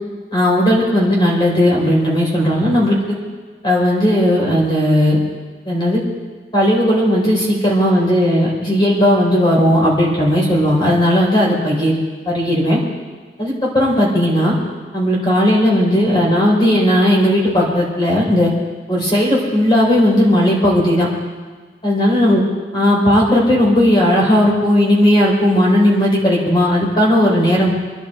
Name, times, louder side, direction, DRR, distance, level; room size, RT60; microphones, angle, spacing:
voice 1, 0.3-3.1 3.6-5.2 5.7-6.0 6.5-11.9 12.3-12.8 13.4-14.5 14.9-18.5 18.9-21.1 21.8-22.4 22.7-27.7, equal, 25° left, -3 dB, 4.3 m, -15 dB
25.0 x 11.0 x 4.5 m, 1.5 s
head